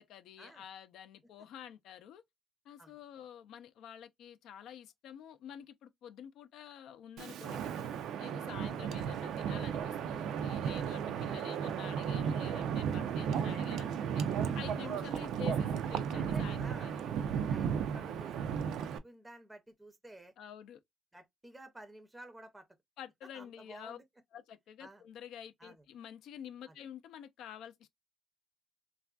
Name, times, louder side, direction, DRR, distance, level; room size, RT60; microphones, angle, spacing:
voice 1, 0.0-2.2 2.7-7.9 8.2-14.2 14.5-17.0 20.4-20.8 23.0-24.0 24.3-27.9, left 9 dB, 85° left, 0.5 m, -49 dB
voice 2, 2.8-3.3 8.6-8.9 14.8-15.1 16.1-20.3 21.1-22.7 23.3-24.0 24.8-25.0 25.6-25.8 26.7-26.8, right 1 dB, 10° right, 0.5 m, -53 dB
Wind, 7.2-19.0, right 7 dB, 85° right, 0.4 m, -34 dB
3.4 x 2.4 x 2.2 m
cardioid pair, 130°, 0 cm